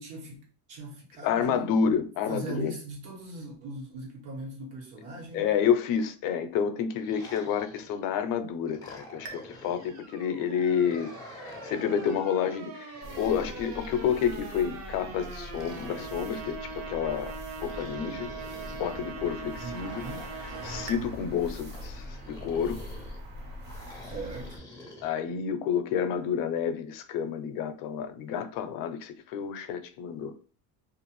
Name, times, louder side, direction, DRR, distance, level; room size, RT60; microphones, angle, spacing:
voice 1, 0.0-1.7 2.3-5.6 19.6-20.3 24.0-24.6, right 2 dB, 85° right, 1.4 m, -40 dB
voice 2, 1.2-2.7 5.3-18.3 18.8-20.0 20.4-22.8 25.0-30.3, left 7 dB, 65° left, 0.5 m, -29 dB
sound 1, 6.9-8.2 8.6-10.1 10.7-12.3 12.9-14.6 15.5-16.9 17.6-19.0 19.7-21.0 21.7-23.2 23.6-25.1, left 2 dB, 10° left, 0.4 m, -48 dB
sound 2, 9.2-21.0, right 5 dB, 50° right, 0.6 m, -42 dB
sound 3, 13.0-24.6, equal, 65° right, 1.0 m, -43 dB
2.5 x 2.4 x 3.0 m
cardioid pair, 160°, 36 cm